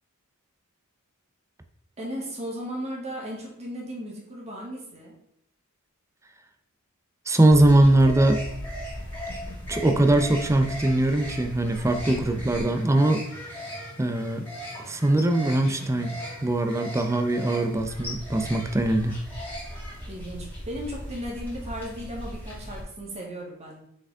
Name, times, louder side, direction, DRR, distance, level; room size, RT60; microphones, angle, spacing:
voice 1, 2.0-5.1 20.1-23.8, equal, 30° right, -3 dB, 2.0 m, -36 dB
voice 2, 7.3-8.4 9.7-13.2 14.0-14.5 14.9-16.1 16.4-19.2, right 1 dB, 15° right, 6 dB, 0.5 m, -21 dB
sound 1, 7.5-22.8, equal, 10° left, 2.4 m, -37 dB
6.0 x 5.1 x 3.5 m, 0.71 s
head